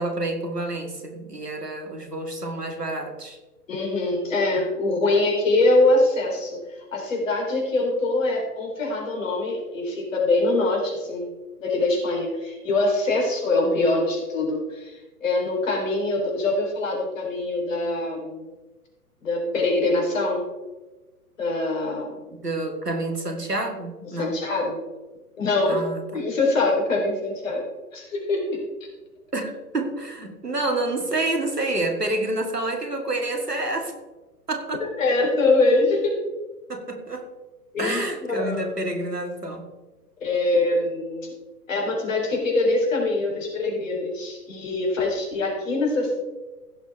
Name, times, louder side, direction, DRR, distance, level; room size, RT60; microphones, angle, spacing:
voice 1, 0.0-3.4 4.9-5.0 13.6-14.1 22.4-24.3 25.7-26.2 29.3-33.9 34.5-34.8 36.7-37.3 37.8-39.7, right 2 dB, 85° right, 5 dB, 2.0 m, -28 dB
voice 2, 3.7-6.6 6.9-11.3 11.6-18.4 19.2-20.5 21.4-22.2 24.1-24.8 25.4-25.8 26.1-27.6 27.9-28.6 34.8-36.2 37.7-38.7 40.2-41.3 41.7-46.2, left 2 dB, 55° left, 0 dB, 3.8 m, -23 dB
16.0 x 6.8 x 3.5 m, 1.2 s
figure-of-eight pair, 115°, 47 cm